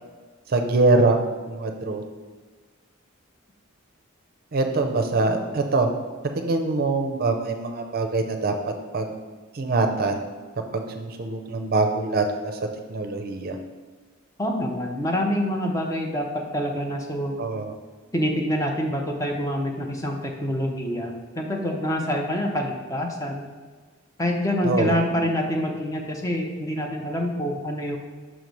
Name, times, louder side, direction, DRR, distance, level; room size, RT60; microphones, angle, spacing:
voice 1, 0.5-1.2 1.5-2.0 4.5-5.9 6.4-8.5 8.9-9.1 9.5-10.3 10.7-12.5 12.9-13.6 17.4-17.7 24.6-25.0, right 3 dB, 45° right, 5 dB, 0.5 m, -23 dB
voice 2, 14.4-17.4 18.1-23.5 24.2-28.0, equal, 15° left, 2 dB, 0.6 m, -26 dB
6.1 x 3.1 x 5.2 m, 1.4 s
head